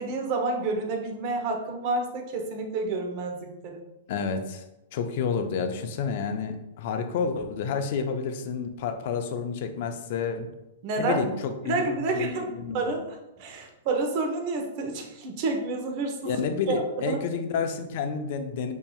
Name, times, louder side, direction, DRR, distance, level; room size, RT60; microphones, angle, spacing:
voice 1, 0.0-3.8 10.8-11.2 11.6-17.2, right 3 dB, 45° right, 3 dB, 0.8 m, -29 dB
voice 2, 4.1-4.6 4.9-10.5 11.0-11.8 12.1-12.9 16.2-18.7, left 5 dB, 55° left, 6 dB, 0.5 m, -30 dB
5.5 x 2.7 x 2.3 m, 0.93 s
hypercardioid pair, 130°, 0 cm